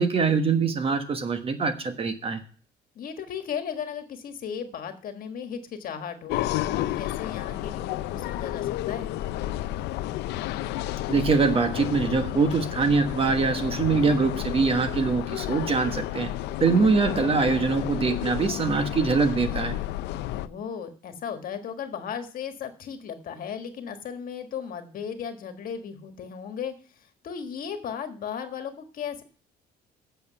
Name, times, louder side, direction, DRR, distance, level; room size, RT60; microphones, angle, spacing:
voice 1, 0.0-2.4 11.1-16.3 16.6-19.8, right 4 dB, 35° right, 8 dB, 1.3 m, -23 dB
voice 2, 2.9-9.1 16.7-17.0 20.4-26.7 27.2-29.2, left 7 dB, 55° left, 7 dB, 1.5 m, -36 dB
sound 1, 6.3-20.5, left 14 dB, 85° left, 0.5 m, -31 dB
8.3 x 6.8 x 6.6 m, 0.41 s
cardioid pair, 110°, 17 cm